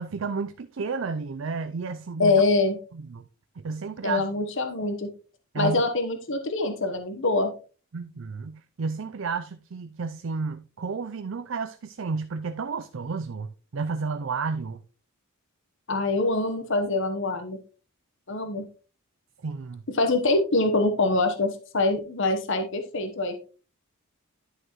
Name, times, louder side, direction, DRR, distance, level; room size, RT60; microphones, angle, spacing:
voice 1, 0.0-2.4 2.9-3.2 3.6-4.3 5.5-5.8 7.9-14.8 19.4-19.8, right 4 dB, 60° right, 0.5 m, -32 dB
voice 2, 2.2-2.8 4.0-5.1 5.5-7.5 15.9-17.6 18.3-18.6 20.0-23.4, left 2 dB, 55° left, 1.1 m, -24 dB
11.0 x 6.3 x 3.0 m
head